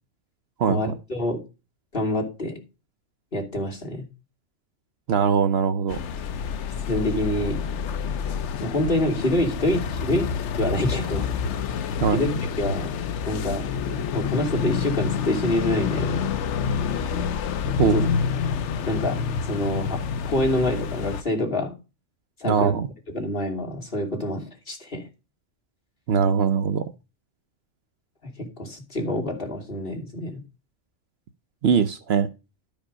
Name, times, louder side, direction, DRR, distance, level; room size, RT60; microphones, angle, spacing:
voice 1, 0.7-1.4 1.9-2.6 3.3-4.1 6.8-7.6 8.6-11.4 11.8-12.9 13.3-16.3 17.8-18.1 18.8-21.7 22.4-22.8 23.1-25.1 28.4-30.4, left 1 dB, 45° left, 0 dB, 3.0 m, -27 dB
voice 2, 5.1-6.0 12.0-12.4 17.8-18.0 22.4-22.9 26.1-26.8 31.6-32.3, right 6 dB, 60° right, 12 dB, 0.9 m, -21 dB
sound 1, 5.9-21.2, left 6 dB, 70° left, 1.0 m, -28 dB
12.5 x 5.4 x 5.1 m, 0.29 s
omnidirectional pair, 1.3 m